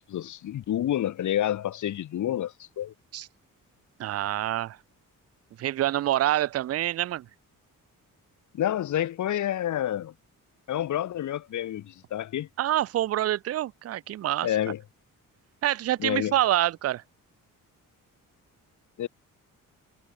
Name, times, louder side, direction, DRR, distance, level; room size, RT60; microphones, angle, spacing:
voice 1, 0.1-2.9 8.5-10.1 10.7-12.5 14.4-14.8 16.0-16.3 19.0-19.1, left 11 dB, 60° left, 1.2 m, -29 dB
voice 2, 4.0-4.8 5.6-7.3 12.6-14.5 15.6-17.0, right 13 dB, 45° right, 0.5 m, -26 dB
wide cardioid pair, 170°, 33 cm